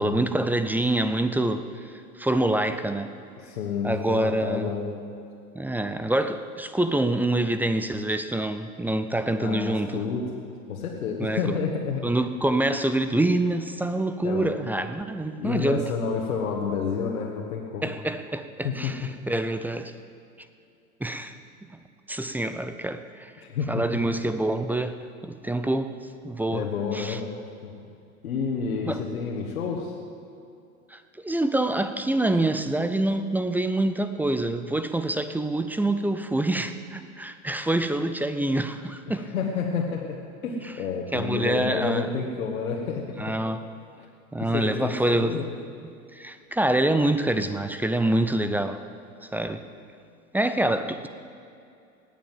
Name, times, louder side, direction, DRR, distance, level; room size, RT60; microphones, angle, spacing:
voice 1, 0.0-3.1 3.8-4.7 5.5-10.0 11.2-11.4 12.0-15.8 17.8-19.9 21.0-21.4 21.7-21.8 22.1-23.3 23.7-25.0 25.2-25.9 26.2-26.6 26.9-27.2 28.9-29.0 30.9-39.2 41.1-42.1 43.2-43.6 44.3-45.4 46.1-48.8 49.2-49.6 50.3-51.1, right 1 dB, 5° right, 10 dB, 0.5 m, -26 dB
voice 2, 3.4-4.9 9.4-10.2 10.7-12.0 14.2-14.6 15.4-18.0 18.6-18.9 23.4-23.8 26.5-27.2 27.6-27.7 28.2-29.9 39.1-40.2 40.4-43.3 44.5-45.5, left 5 dB, 75° left, -2 dB, 1.8 m, -29 dB
19.0 x 7.2 x 7.6 m, 2.5 s
hypercardioid pair, 90°, 43 cm